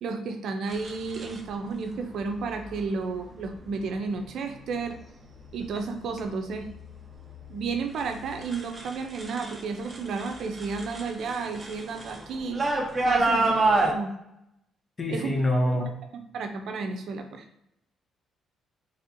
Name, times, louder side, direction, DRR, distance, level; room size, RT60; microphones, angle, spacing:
voice 1, 0.0-5.0 5.5-6.7 7.5-12.6 13.0-14.1 15.1-15.7 16.3-17.5, right 4 dB, 70° right, 5 dB, 0.5 m, -32 dB
sound 1, 0.7-1.4 2.5-2.9 3.4-3.9 4.4-5.0 5.3-9.6 9.9-13.9, right 2 dB, 30° right, 0.8 m, -29 dB
voice 2, 15.0-15.9, left 1 dB, 30° left, 1 dB, 1.1 m, -25 dB
4.2 x 3.3 x 2.7 m, 0.82 s
cardioid pair, 90°, 0 cm